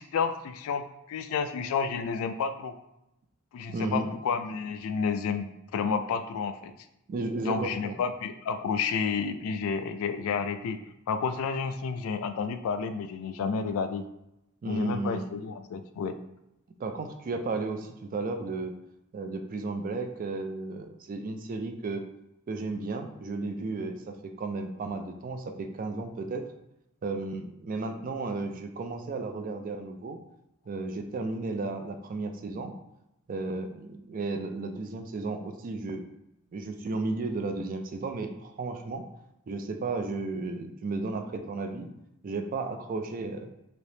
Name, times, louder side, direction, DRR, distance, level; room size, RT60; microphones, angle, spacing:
voice 1, 0.0-2.7 3.5-6.7 7.5-10.8 11.1-14.1 14.7-16.2, left 5 dB, 65° left, 9 dB, 0.3 m, -30 dB
voice 2, 3.7-4.1 7.1-8.0 14.6-15.2 16.8-18.7 19.1-22.0 22.5-26.4 27.0-30.2 30.7-32.7 33.3-36.0 36.5-39.0 39.5-41.9 42.2-43.5, right 3 dB, 40° right, 6 dB, 0.3 m, -33 dB
3.3 x 2.9 x 2.7 m, 0.86 s
head